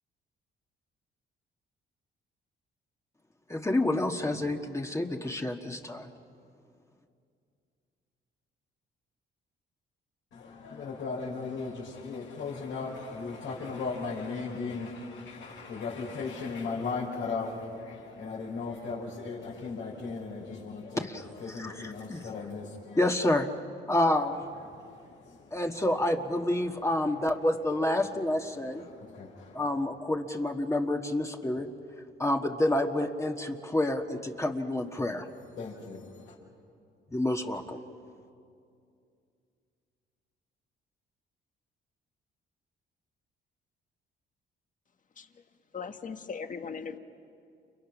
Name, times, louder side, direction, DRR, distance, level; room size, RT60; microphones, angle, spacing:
voice 1, 3.5-6.1 21.0-21.1 21.6-21.7 22.1-22.2 23.0-23.5 23.9-24.4 25.5-28.8 29.5-31.7 32.2-35.3 37.1-37.8, left 1 dB, 15° left, 1.5 m, -28 dB
voice 2, 10.3-23.0 24.4-25.9 26.4-29.8 34.9-36.4, left 4 dB, 80° left, 5.6 m, -38 dB
voice 3, 45.7-47.0, left 5 dB, 40° left, 1.5 m, -39 dB
30.0 x 29.5 x 6.1 m
cardioid pair, 90°, 20 cm